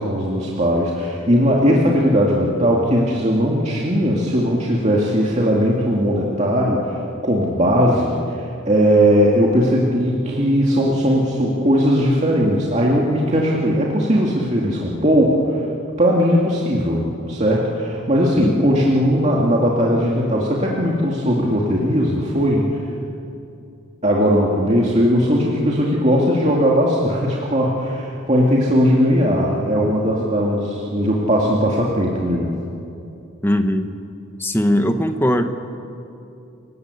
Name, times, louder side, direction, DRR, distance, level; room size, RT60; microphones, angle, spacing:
voice 1, 0.0-15.7 16.0-22.8 24.0-32.5, equal, 30° right, -3 dB, 2.3 m, -18 dB
voice 2, 18.4-18.7 33.4-33.9 34.4-35.4, equal, 10° left, 7 dB, 1.2 m, -19 dB
30.0 x 18.0 x 8.3 m, 2.7 s
head